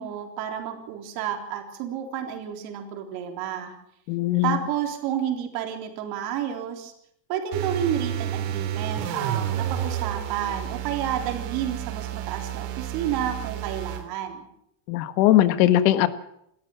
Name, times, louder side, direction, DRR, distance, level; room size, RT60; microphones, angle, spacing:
voice 1, 0.0-3.8 4.4-6.9 7.3-14.5, right 9 dB, 50° right, 4 dB, 3.7 m, -30 dB
voice 2, 4.1-4.6 14.9-16.1, left 13 dB, 80° left, 12 dB, 1.7 m, -20 dB
sound 1, 7.5-14.1, right 10 dB, 75° right, 3.7 m, -31 dB
27.5 x 13.5 x 7.2 m, 0.74 s
cardioid pair, 175°, 49 cm